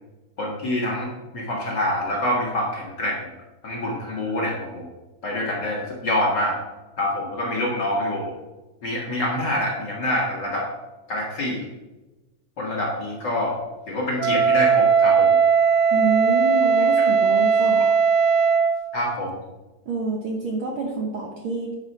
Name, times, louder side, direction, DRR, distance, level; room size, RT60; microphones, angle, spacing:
voice 1, 0.4-3.3 3.6-4.9 5.2-6.5 7.0-8.3 8.8-10.7 11.1-11.7 12.6-13.6 13.9-15.4 17.0-17.1 18.9-19.4, left 1 dB, 45° left, -2 dB, 1.8 m, -26 dB
Wind instrument woodwind instrument, 14.2-18.8, right 6 dB, 80° right, 1.9 m, -18 dB
voice 2, 15.9-17.8 19.9-21.7, right 3 dB, 60° right, -1 dB, 1.5 m, -27 dB
10.5 x 4.9 x 5.4 m, 1.1 s
omnidirectional pair, 3.3 m